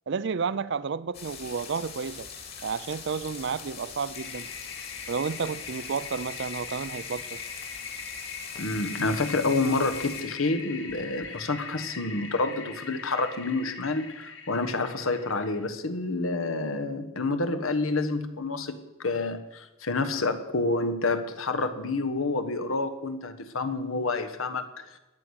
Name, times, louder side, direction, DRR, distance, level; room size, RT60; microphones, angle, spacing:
voice 1, 0.1-2.3 2.6-4.5 5.1-7.4, right 5 dB, 60° right, 16 dB, 0.5 m, -31 dB
sound 1, 1.1-10.2, left 6 dB, 50° left, 2.7 m, -42 dB
Toilet flush, 4.1-15.7, left 5 dB, 65° left, 1.5 m, -41 dB
voice 2, 8.6-25.0, left 3 dB, 80° left, 8 dB, 1.3 m, -28 dB
13.5 x 9.9 x 6.4 m, 1.0 s
head